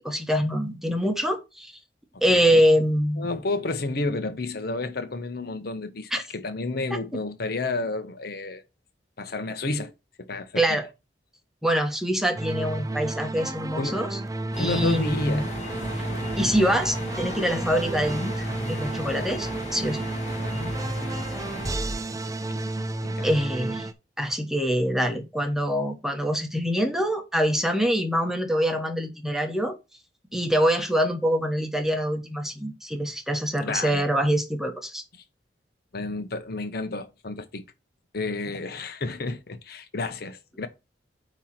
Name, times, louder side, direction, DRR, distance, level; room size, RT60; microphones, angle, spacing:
voice 1, 0.0-1.7 2.2-3.3 6.1-6.2 10.6-10.9 11.6-14.2 14.6-15.4 16.4-18.3 18.7-20.0 23.2-23.9 24.2-29.8 30.3-35.0, equal, ahead, 1.1 m, -24 dB
voice 2, 2.3-2.6 3.2-8.6 9.2-9.9 10.2-10.7 13.8-14.0 14.6-15.5 20.2-20.7 22.1-22.6 23.0-23.3 33.6-34.0 35.9-37.6 38.1-40.7, left 2 dB, 60° left, 1.0 m, -31 dB
sound 1, 12.4-23.9, right 2 dB, 20° right, 0.5 m, -31 dB
sound 2, 14.5-21.7, equal, 40° left, 1.8 m, -36 dB
9.1 x 3.1 x 5.8 m
head